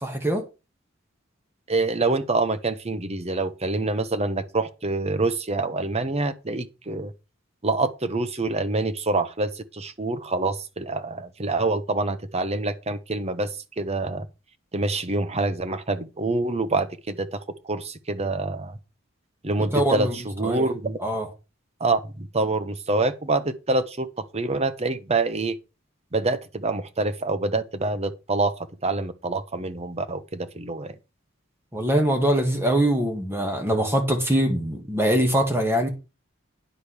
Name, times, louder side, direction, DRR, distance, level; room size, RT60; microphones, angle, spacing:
voice 1, 0.0-0.4 19.7-20.2 20.4-20.7 21.0-21.3 31.7-35.9, right 1 dB, 10° right, 2.0 m, -23 dB
voice 2, 1.7-7.1 7.6-13.5 13.8-14.2 14.7-17.4 17.6-18.8 19.4-21.0 21.8-24.1 24.3-25.6 26.1-28.5 28.8-31.0, right 3 dB, 35° right, 1.0 m, -26 dB
10.0 x 5.2 x 6.4 m
head